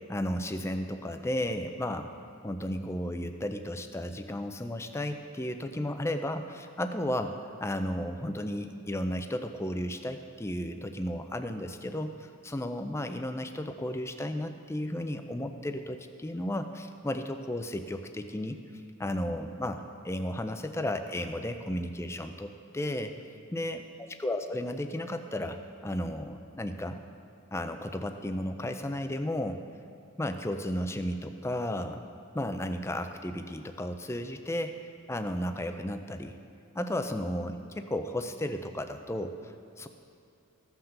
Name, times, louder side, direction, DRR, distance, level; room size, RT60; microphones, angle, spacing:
voice 1, 0.0-2.1 2.4-18.6 19.0-23.2 23.5-27.0 27.5-29.6 30.2-32.0 32.3-34.8 35.1-36.3 36.7-39.9, left 1 dB, 10° left, 7 dB, 0.4 m, -34 dB
15.0 x 5.8 x 6.6 m, 2.6 s
head